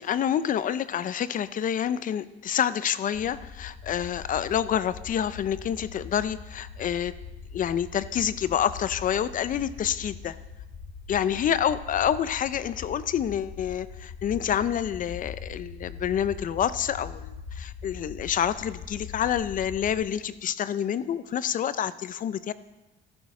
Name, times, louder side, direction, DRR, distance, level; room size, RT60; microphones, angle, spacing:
voice 1, 0.0-7.1 7.5-10.4 11.1-22.5, left 9 dB, 40° left, 16 dB, 0.4 m, -28 dB
sound 1, 3.1-19.9, left 5 dB, 70° left, 1.7 m, -42 dB
13.5 x 11.0 x 4.2 m, 1.1 s
cardioid pair, 140°, 21 cm